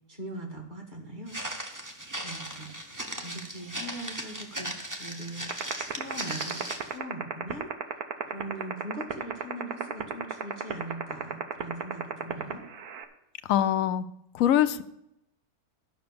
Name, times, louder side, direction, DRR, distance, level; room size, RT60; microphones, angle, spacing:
voice 1, 0.1-1.4 2.2-2.7 3.1-7.7 8.2-12.7, right 1 dB, 30° right, 2 dB, 2.1 m, -41 dB
Walk footsteps, 1.3-7.0, right 1 dB, 15° right, 1.1 m, -37 dB
sound 1, 5.5-13.0, right 10 dB, 90° right, 1.5 m, -30 dB
voice 2, 13.5-14.0 14.3-14.8, left 10 dB, 70° left, 13 dB, 1.0 m, -23 dB
12.0 x 6.0 x 6.9 m, 0.80 s
omnidirectional pair, 1.6 m